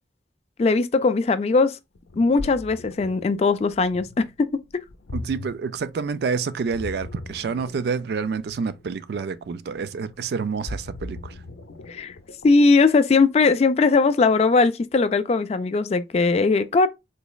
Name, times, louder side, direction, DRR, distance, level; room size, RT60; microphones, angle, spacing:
voice 1, 0.6-1.8 2.2-4.6 11.9-12.1 12.4-16.9, left 4 dB, 35° left, 0.3 m, -19 dB
Ocean, 1.9-12.7, left 2 dB, 85° left, 0.5 m, -39 dB
voice 2, 5.1-11.4, right 5 dB, 60° right, 0.3 m, -28 dB
3.9 x 3.0 x 2.3 m
head